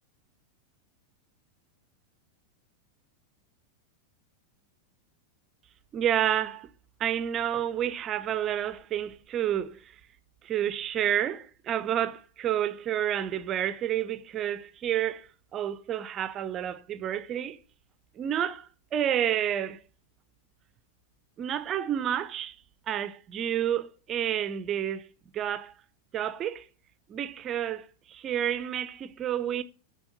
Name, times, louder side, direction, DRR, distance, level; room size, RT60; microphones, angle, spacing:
voice 1, 5.9-6.7 7.0-9.9 10.4-17.6 18.2-19.8 21.4-22.6 22.9-25.0 25.3-25.7 26.1-26.7 27.1-29.6, right 10 dB, 30° right, 0.6 m, -30 dB
7.0 x 4.7 x 6.6 m
figure-of-eight pair, 90°, 0 cm